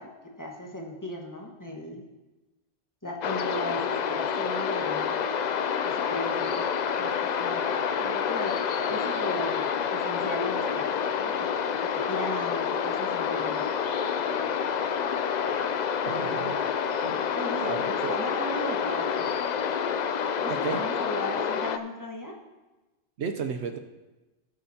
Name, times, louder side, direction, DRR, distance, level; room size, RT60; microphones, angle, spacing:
voice 1, 0.0-2.0 3.0-5.2 5.8-6.7 7.0-7.7 8.0-8.6 8.9-10.9 11.2-11.3 11.8-13.7 17.3-19.3 20.4-22.4, left 1 dB, 15° left, -1 dB, 1.3 m, -36 dB
sound 1, 3.2-21.8, left 7 dB, 60° left, 0.4 m, -28 dB
voice 2, 16.0-16.6 17.0-17.3 17.6-18.1 20.5-20.8 23.2-23.8, right 5 dB, 70° right, 6 dB, 0.9 m, -33 dB
18.0 x 7.7 x 2.8 m, 1.1 s
omnidirectional pair, 1.2 m